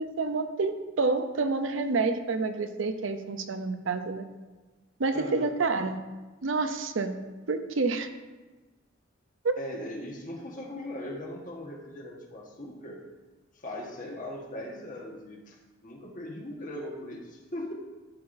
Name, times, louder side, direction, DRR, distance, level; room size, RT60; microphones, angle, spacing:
voice 1, 0.0-4.2 5.0-6.0 6.4-7.2 7.5-8.1 9.4-9.6, right 3 dB, 75° right, 8 dB, 0.6 m, -28 dB
voice 2, 5.1-5.5 9.6-13.0 13.6-17.7, left 1 dB, 45° left, -1 dB, 1.4 m, -39 dB
12.0 x 5.6 x 2.6 m, 1.2 s
head